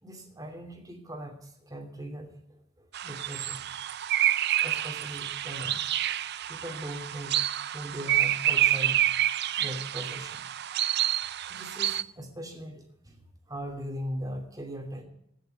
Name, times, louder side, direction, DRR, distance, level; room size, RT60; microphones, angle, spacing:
voice 1, 0.0-3.7 4.6-7.4 7.7-9.1 9.6-10.4 10.7-11.2 11.5-15.0, equal, 15° right, 3 dB, 2.8 m, -40 dB
sound 1, 2.9-12.0, right 12 dB, 50° right, 0.5 m, -28 dB
17.0 x 7.3 x 9.1 m, 0.75 s
head